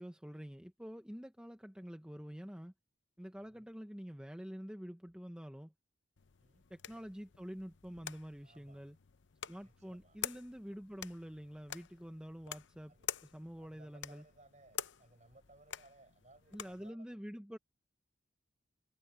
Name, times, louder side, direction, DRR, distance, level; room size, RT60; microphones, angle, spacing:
voice 1, 0.0-2.7 3.2-5.7 6.7-9.0 9.5-12.9 13.2-14.2 16.5-17.6, equal, 5° right, 0.8 m, -47 dB
sound 1, 6.2-16.9, left 10 dB, 70° left, 0.7 m, -48 dB
voice 2, 6.4-6.7 8.4-8.9 9.6-10.2 12.9-13.1 13.6-17.2, right 2 dB, 40° right, 6.0 m, -63 dB
head